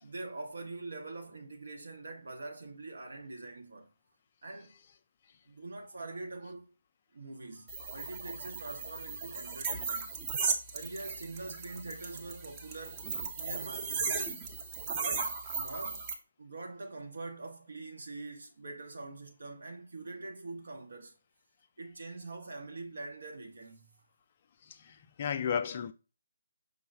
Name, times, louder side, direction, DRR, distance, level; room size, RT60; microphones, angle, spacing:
voice 1, 0.0-3.9 4.4-4.7 5.5-6.7 7.1-10.1 10.7-13.1 13.4-14.4 15.0-16.1 16.4-21.1 21.8-24.0, right 2 dB, 60° right, 0.8 m, -44 dB
sound 1, 7.7-16.1, right 5 dB, 20° right, 0.7 m, -36 dB
voice 2, 24.7-25.9, left 7 dB, 35° left, 0.3 m, -34 dB
5.3 x 2.1 x 4.2 m
figure-of-eight pair, 145°, 0 cm